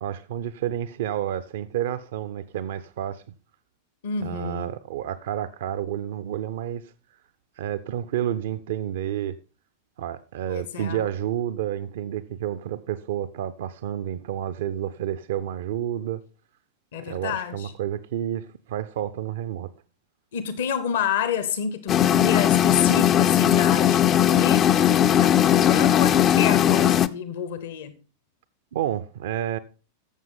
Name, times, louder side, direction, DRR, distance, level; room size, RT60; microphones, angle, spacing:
voice 1, 0.0-3.2 4.2-6.9 7.6-9.4 10.0-16.2 16.9-19.7 28.7-29.6, right 11 dB, 55° right, 0.5 m, -30 dB
voice 2, 4.0-4.7 10.5-11.0 16.9-17.7 20.3-27.9, left 8 dB, 55° left, 0.9 m, -29 dB
sound 1, 21.9-27.1, left 10 dB, 30° left, 0.4 m, -18 dB
13.5 x 7.4 x 3.7 m
figure-of-eight pair, 90°, 0 cm